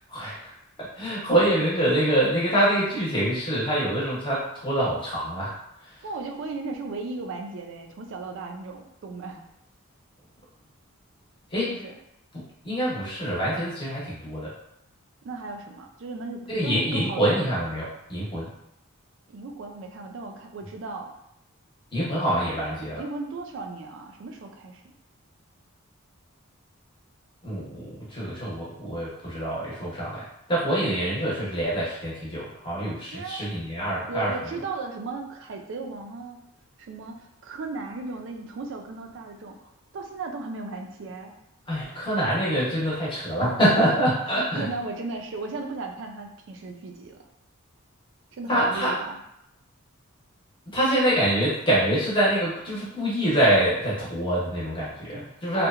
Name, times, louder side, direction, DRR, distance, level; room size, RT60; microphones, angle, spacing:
voice 1, 0.1-0.4 0.8-5.5 11.5-11.7 12.6-14.5 16.5-18.5 21.9-23.0 27.4-34.3 41.7-44.7 48.5-48.9 50.7-55.7, right 1 dB, 20° left, -7 dB, 0.7 m, -25 dB
voice 2, 6.0-9.4 11.6-12.0 15.2-17.4 19.3-21.1 22.9-24.8 33.1-33.4 34.1-36.4 36.8-41.4 44.2-47.2 48.3-49.2 55.1-55.7, right 3 dB, 55° right, 3 dB, 0.3 m, -36 dB
2.8 x 2.1 x 2.4 m, 0.81 s
head